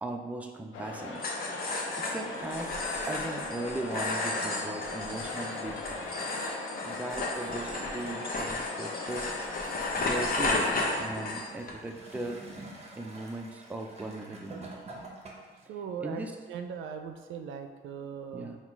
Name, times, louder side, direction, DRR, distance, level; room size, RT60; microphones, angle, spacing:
voice 1, 0.0-1.2 2.1-2.7 3.1-6.1 6.8-9.3 10.0-12.4 13.0-14.7 16.0-16.3 18.3-18.6, right 2 dB, 5° right, 3 dB, 0.4 m, -38 dB
sound 1, 0.7-11.1, left 3 dB, 80° left, 0.6 m, -39 dB
sound 2, 1.2-11.7, left 2 dB, 45° left, 0.8 m, -33 dB
Gurgling / Toilet flush, 10.8-15.6 16.5-16.6, right 2 dB, 30° right, 0.8 m, -46 dB
voice 2, 15.7-18.5, right 7 dB, 75° right, 6 dB, 0.4 m, -39 dB
3.9 x 2.3 x 4.5 m, 1.5 s
cardioid pair, 90°, 20 cm